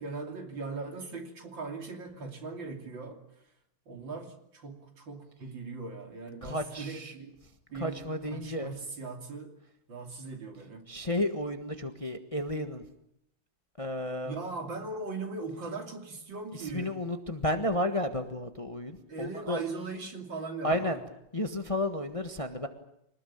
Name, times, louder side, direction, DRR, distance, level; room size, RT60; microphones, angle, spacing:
voice 1, 0.0-3.2 3.9-7.4 7.7-8.0 8.3-9.6 9.9-10.8 14.2-17.0 19.1-21.0, right 4 dB, 65° right, 3.6 m, -39 dB
voice 2, 6.4-7.1 7.8-8.7 10.9-12.8 13.8-14.3 16.7-19.6 20.6-21.0 21.3-22.7, left 1 dB, 20° left, 1.4 m, -32 dB
25.5 x 19.5 x 8.8 m
omnidirectional pair, 2.2 m